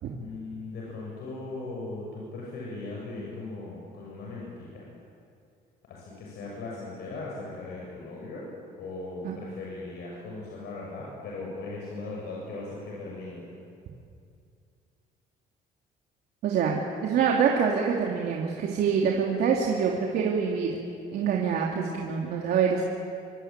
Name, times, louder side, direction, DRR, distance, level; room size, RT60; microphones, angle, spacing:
voice 1, 0.2-4.9 5.9-8.4 8.8-13.4, left 3 dB, 75° left, -3 dB, 7.5 m, -38 dB
voice 2, 16.4-20.8 21.1-22.8, right 6 dB, 70° right, -1 dB, 3.1 m, -25 dB
26.0 x 24.5 x 9.1 m, 2.4 s
cardioid pair, 110°, 17 cm